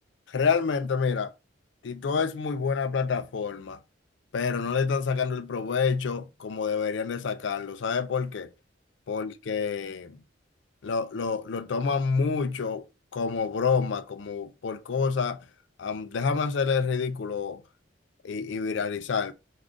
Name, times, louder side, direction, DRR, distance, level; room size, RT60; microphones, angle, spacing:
voice 1, 0.3-1.3 1.8-3.8 4.3-8.5 9.1-10.2 10.8-12.9 13.1-15.4 15.8-17.6 18.2-19.3, left 5 dB, 70° left, 0.4 m, -28 dB
3.6 x 2.4 x 3.6 m
head